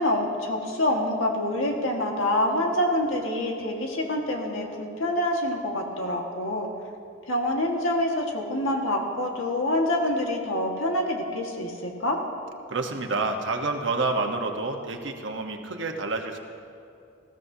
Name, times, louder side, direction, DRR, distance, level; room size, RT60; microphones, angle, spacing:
voice 1, 0.0-6.7 7.3-12.2, left 1 dB, 90° left, 1 dB, 1.7 m, -26 dB
voice 2, 12.7-16.4, right 3 dB, 65° right, 3 dB, 1.1 m, -28 dB
20.0 x 15.0 x 2.8 m, 2.5 s
head